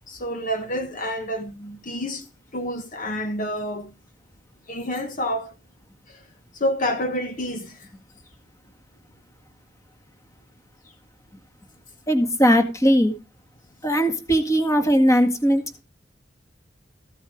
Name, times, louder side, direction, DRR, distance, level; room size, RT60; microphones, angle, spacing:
voice 1, 0.1-2.3 2.5-3.9 4.7-5.5 6.1-6.2 6.5-7.9, equal, 50° left, 1.3 m, -28 dB
voice 2, 12.1-13.1 13.8-15.8, equal, 20° left, 1.8 m, -19 dB
15.0 x 7.0 x 5.0 m
head